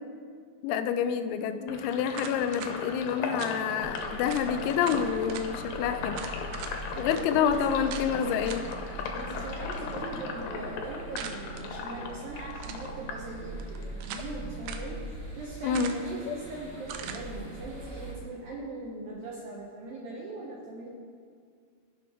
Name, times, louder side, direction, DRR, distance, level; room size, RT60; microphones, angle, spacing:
voice 1, 0.6-6.2 7.0-8.7 15.6-16.0 16.3-16.4, left 7 dB, 90° left, 10 dB, 3.0 m, -28 dB
Sink (filling or washing), 1.7-13.9 14.3-15.7, left 4 dB, 75° left, 2.8 m, -38 dB
sound 1, 2.1-2.7 3.4-3.6 4.0-4.1 4.3-4.5 4.8-5.5 6.1-6.8 7.1-7.2 7.9-8.1 8.5-8.8 11.2-11.6 12.5-12.9 13.6-14.3 14.7-14.9 15.7-16.2 16.9-17.2, right 8 dB, 90° right, 2.3 m, -40 dB
sound 2, 3.8-18.1, right 2 dB, 45° right, 0.9 m, -42 dB
voice 2, 6.9-8.3 9.1-20.9, right 2 dB, 75° right, -3 dB, 2.2 m, -40 dB
16.5 x 5.8 x 3.6 m, 2.1 s
omnidirectional pair, 5.3 m